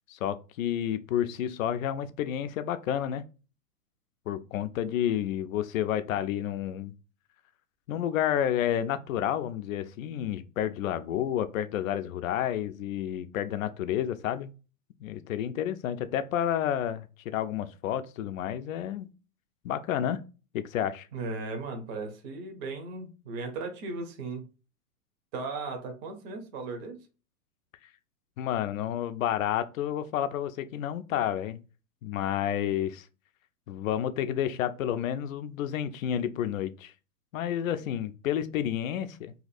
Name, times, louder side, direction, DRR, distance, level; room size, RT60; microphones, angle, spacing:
voice 1, 0.1-3.2 4.3-6.9 7.9-14.5 15.0-19.1 19.6-20.2 20.5-21.1 28.4-31.6 32.0-33.1 33.7-36.9 37.3-39.3, left 10 dB, 60° left, 0.5 m, -30 dB
voice 2, 21.1-24.5 25.3-27.0, right 3 dB, 25° right, 0.6 m, -36 dB
2.8 x 2.5 x 4.0 m
hypercardioid pair, 130°, 48 cm